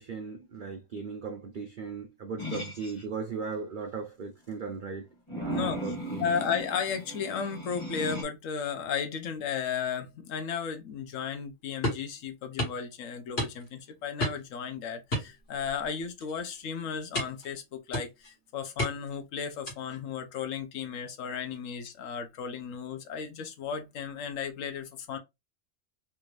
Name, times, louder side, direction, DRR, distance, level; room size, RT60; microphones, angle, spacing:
voice 1, 0.0-5.0 5.3-6.3, right 5 dB, 70° right, 0.4 m, -37 dB
sound 1, 2.4-3.0 5.3-8.2, right 1 dB, 25° left, 1.0 m, -37 dB
voice 2, 5.5-5.9 6.2-25.2, left 7 dB, 75° left, 1.1 m, -34 dB
sound 2, 11.8-12.1 12.6-12.8 13.4-13.8 14.2-14.5 15.1-15.9 16.2-16.4 17.1-17.5 17.9-18.3 18.8-19.2 19.7-20.0, left 1 dB, 50° left, 1.7 m, -32 dB
3.4 x 2.6 x 3.1 m
omnidirectional pair, 1.4 m